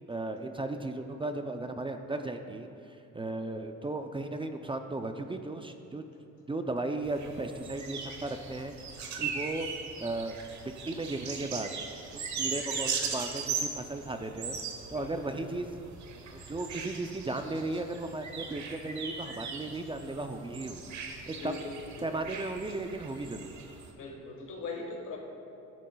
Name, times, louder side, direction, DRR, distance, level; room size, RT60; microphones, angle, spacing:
voice 1, 0.1-6.0 6.5-8.7 9.2-9.7 10.0-10.3 10.8-11.7 12.1-14.6 14.9-15.8 16.3-21.0 21.3-21.5 22.0-23.5, right 2 dB, 15° right, 6 dB, 0.5 m, -36 dB
sound 1, 7.0-23.9, right 5 dB, 70° right, 1.2 m, -39 dB
voice 2, 12.4-12.8 14.9-15.2 21.3-22.2 23.9-25.2, left 3 dB, 80° left, 0 dB, 1.7 m, -41 dB
12.5 x 10.5 x 2.3 m, 2.8 s
cardioid pair, 90°, 30 cm